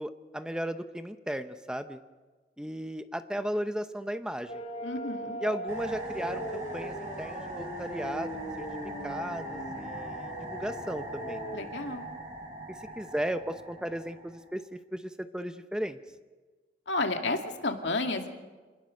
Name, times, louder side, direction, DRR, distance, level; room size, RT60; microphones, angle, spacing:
voice 1, 0.0-2.0 2.6-4.6 5.4-8.6 9.0-11.4 12.7-16.0, equal, 5° right, 9 dB, 0.7 m, -35 dB
sound 1, 4.5-11.7, equal, 35° left, 1.7 m, -40 dB
voice 2, 4.8-5.4 11.5-12.1 16.9-18.3, left 2 dB, 75° left, 4 dB, 2.3 m, -31 dB
sound 2, 5.7-14.5, right 1 dB, 45° right, 7.8 m, -41 dB
27.5 x 20.0 x 6.5 m, 1.3 s
head